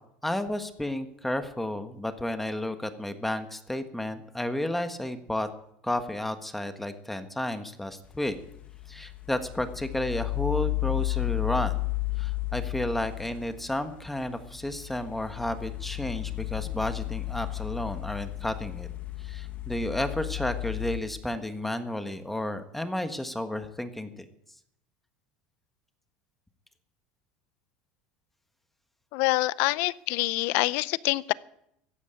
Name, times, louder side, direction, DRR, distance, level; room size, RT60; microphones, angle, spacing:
voice 1, 0.2-5.5 5.8-8.3 8.9-11.7 12.2-18.9 19.2-24.1, left 1 dB, 5° left, 9 dB, 1.4 m, -32 dB
sound 1, 8.1-21.0, left 22 dB, 35° left, 1.8 m, -33 dB
voice 2, 29.1-31.3, left 21 dB, 70° left, 20 dB, 0.6 m, -26 dB
14.5 x 9.6 x 8.7 m, 0.75 s
supercardioid pair, 120°, 4 cm